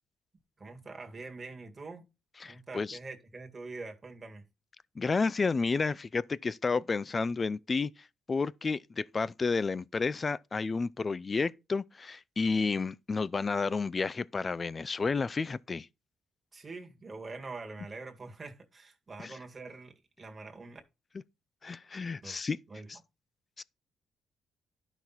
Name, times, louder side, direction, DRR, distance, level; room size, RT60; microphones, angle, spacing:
voice 1, 0.6-2.0 2.4-4.4 16.5-20.8 22.2-22.4 22.7-22.9, right 3 dB, 30° right, 2.1 m, -44 dB
voice 2, 2.4-3.0 5.0-15.9 19.2-19.4 21.6-22.6 22.9-23.0 23.6-23.7, left 4 dB, 30° left, 0.4 m, -31 dB
11.5 x 6.0 x 4.1 m
cardioid pair, 90°, 0 cm